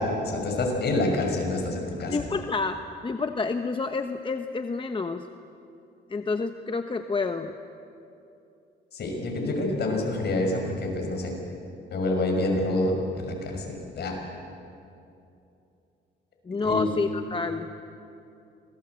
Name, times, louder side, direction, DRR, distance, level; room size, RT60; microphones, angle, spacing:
voice 1, 0.0-2.2 8.9-11.4 11.9-14.1 16.6-16.9, left 2 dB, 55° left, 2 dB, 6.2 m, -27 dB
voice 2, 2.1-5.3 6.1-7.5 16.5-17.7, left 4 dB, 25° left, 7 dB, 0.9 m, -29 dB
26.0 x 19.5 x 8.1 m, 2.7 s
cardioid pair, 90°, 20 cm